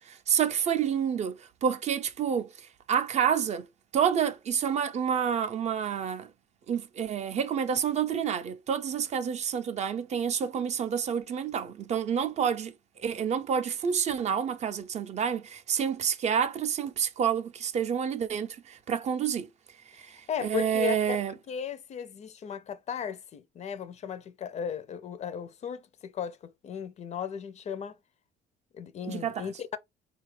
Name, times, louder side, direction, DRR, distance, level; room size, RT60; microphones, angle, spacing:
voice 1, 0.0-2.5 2.9-3.7 3.9-6.3 6.7-12.7 13.0-19.5 19.9-21.3 29.0-29.5, right 8 dB, 40° right, 0.4 m, -28 dB
voice 2, 20.3-21.2 21.5-27.9 28.7-29.8, left 8 dB, 40° left, 0.4 m, -36 dB
4.0 x 2.3 x 3.1 m
cardioid pair, 110°, 17 cm